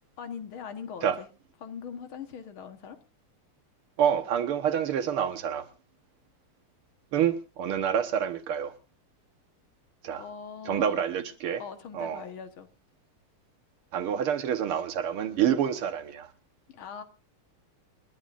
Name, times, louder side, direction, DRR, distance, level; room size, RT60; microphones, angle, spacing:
voice 1, 0.2-1.3 1.6-3.0 10.1-11.0 11.6-12.7 16.7-17.0, left 7 dB, 75° left, 2.1 m, -41 dB
voice 2, 4.0-5.7 7.1-8.7 10.0-10.2 10.7-11.6 11.9-12.2 13.9-16.3, right 9 dB, 80° right, 2.1 m, -27 dB
29.0 x 11.5 x 2.5 m
omnidirectional pair, 2.4 m